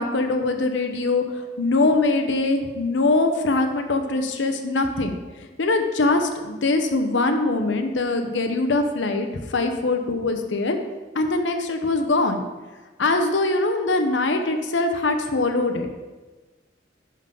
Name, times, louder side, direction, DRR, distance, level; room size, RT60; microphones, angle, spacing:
voice 1, 0.0-5.2 5.6-10.8 11.1-12.4 13.0-15.9, left 2 dB, 85° left, 6 dB, 0.8 m, -22 dB
10.5 x 3.9 x 5.5 m, 1.2 s
head